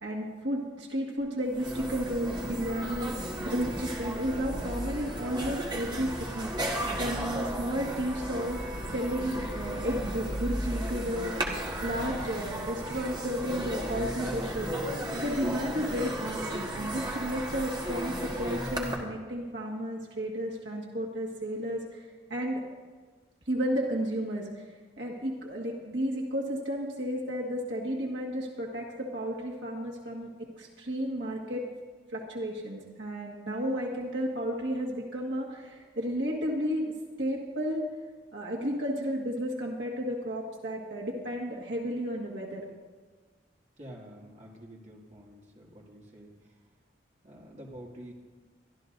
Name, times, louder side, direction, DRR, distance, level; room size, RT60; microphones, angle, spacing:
voice 1, 0.0-3.1 3.4-6.7 7.0-8.6 8.9-11.4 11.8-14.7 15.1-22.7 23.5-24.6 25.0-31.6 32.1-36.9 37.2-37.9 38.3-42.7, equal, 75° right, -2 dB, 1.7 m, -33 dB
sound 1, 1.2-1.3 1.5-19.0, right 1 dB, 25° right, 1.5 m, -34 dB
voice 2, 43.8-46.7 47.2-48.1, equal, 40° right, -3 dB, 2.2 m, -48 dB
23.5 x 12.5 x 2.6 m, 1.4 s
head